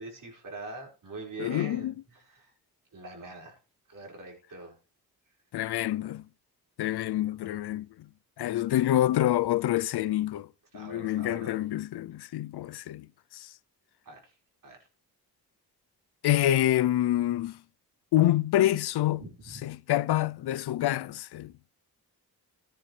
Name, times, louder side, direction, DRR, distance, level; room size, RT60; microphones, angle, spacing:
voice 1, 0.0-2.5 2.9-3.6 3.9-4.8 6.9-7.2 10.7-11.5 14.0-14.3 14.6-14.8 19.2-19.6, right 2 dB, 55° right, 5.5 m, -43 dB
voice 2, 1.4-1.9 5.5-6.2 6.8-8.1 8.4-10.5 10.7-13.1 13.3-13.5 16.2-17.6 18.1-19.2 19.6-21.5, left 13 dB, 75° left, 0.6 m, -27 dB
14.5 x 10.0 x 3.3 m
cardioid pair, 90°, 39 cm